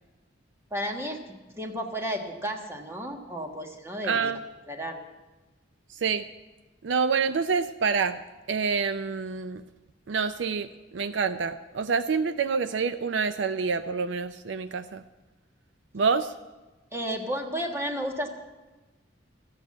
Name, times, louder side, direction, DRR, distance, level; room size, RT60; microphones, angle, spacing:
voice 1, 0.7-1.2 1.5-4.3 4.7-5.0 16.9-18.3, equal, 15° right, 3 dB, 1.4 m, -32 dB
voice 2, 4.0-4.4 5.9-6.3 6.8-8.2 8.5-9.6 10.1-10.7 10.9-15.0 15.9-16.3, right 5 dB, 70° right, 12 dB, 0.5 m, -27 dB
13.5 x 8.1 x 8.4 m, 1.2 s
head